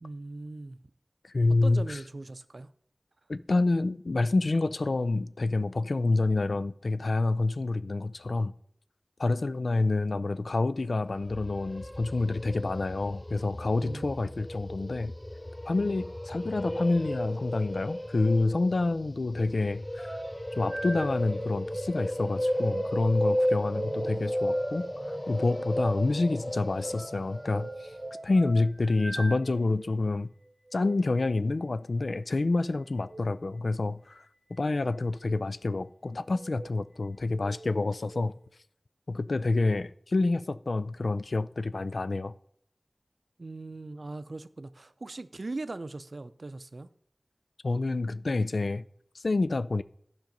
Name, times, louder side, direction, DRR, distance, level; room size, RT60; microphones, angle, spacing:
voice 1, 0.0-0.8 1.5-2.7 9.3-9.4 13.8-14.3 43.4-46.9, right 2 dB, 75° right, 0.5 m, -40 dB
voice 2, 1.2-2.0 3.3-8.5 9.2-15.1 15.7-20.2 20.6-27.9 28.2-30.3 30.7-34.2 34.5-38.3 39.1-42.3 47.6-48.8 49.1-49.8, left 2 dB, 85° left, 0.3 m, -28 dB
sound 1, 11.1-28.1, equal, 15° left, 0.4 m, -34 dB
sound 2, 20.0-29.9 30.7-31.0 33.0-33.3 34.1-34.6 35.1-35.5 36.2-36.7 37.2-38.3, right 2 dB, 45° right, 0.9 m, -40 dB
12.0 x 5.2 x 5.3 m
wide cardioid pair, 45°, 0 cm